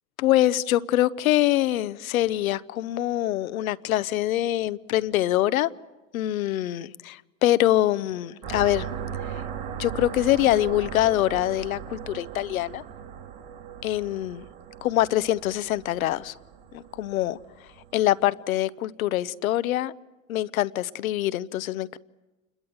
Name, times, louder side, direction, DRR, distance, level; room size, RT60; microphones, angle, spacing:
voice 1, 0.2-5.7 6.1-8.9 9.3-9.4 9.8-12.8 13.8-14.4 14.8-16.3 16.7-17.4 17.9-19.9 20.3-22.0, left 14 dB, 80° left, 16 dB, 0.8 m, -24 dB
sound 1, 8.4-18.0, right 8 dB, 65° right, 3.5 m, -38 dB
28.0 x 22.0 x 7.9 m, 1.1 s
hypercardioid pair, 95°, 41 cm